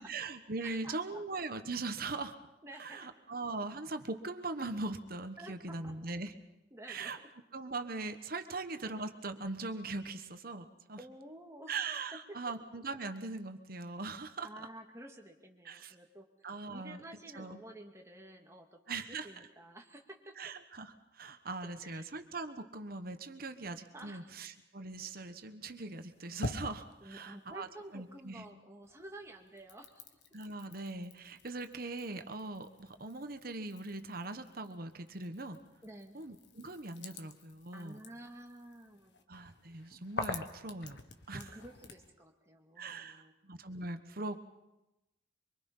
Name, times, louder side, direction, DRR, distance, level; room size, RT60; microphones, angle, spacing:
voice 1, 0.0-2.4 2.8-6.3 6.9-7.2 7.5-11.0 11.7-14.7 15.6-15.9 16.4-17.0 17.3-17.6 18.9-19.5 20.4-27.7 27.9-28.4 30.3-35.6 36.1-38.0 39.3-41.0 41.3-41.5 42.8-44.4, right 3 dB, 50° right, 8 dB, 1.3 m, -41 dB
voice 2, 0.6-1.2 2.6-3.1 5.4-5.9 6.7-7.1 11.0-11.7 14.4-20.3 21.8-22.0 23.9-24.3 27.0-30.0 35.8-36.2 37.7-39.2 41.3-43.3, right 1 dB, 15° right, 2 dB, 2.2 m, -51 dB
sound 1, 25.8-28.5 28.8-42.1, left 2 dB, 65° left, 1.6 m, -47 dB
24.5 x 23.5 x 5.6 m, 0.97 s
head